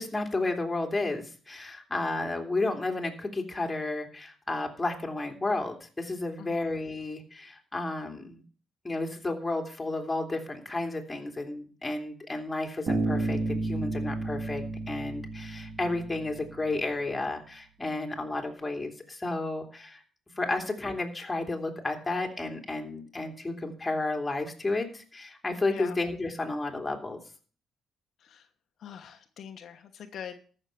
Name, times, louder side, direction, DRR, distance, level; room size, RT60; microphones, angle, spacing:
voice 1, 0.0-8.4 8.8-20.0 20.4-27.2, left 2 dB, 15° left, 2 dB, 2.9 m, -32 dB
voice 2, 6.4-6.7 25.7-26.0 28.2-28.5 28.8-30.4, left 8 dB, 65° left, 5 dB, 1.1 m, -43 dB
Bass guitar, 12.9-16.6, right 2 dB, 45° right, 2.8 m, -32 dB
14.0 x 6.5 x 6.8 m, 0.42 s
cardioid pair, 90°, 0 cm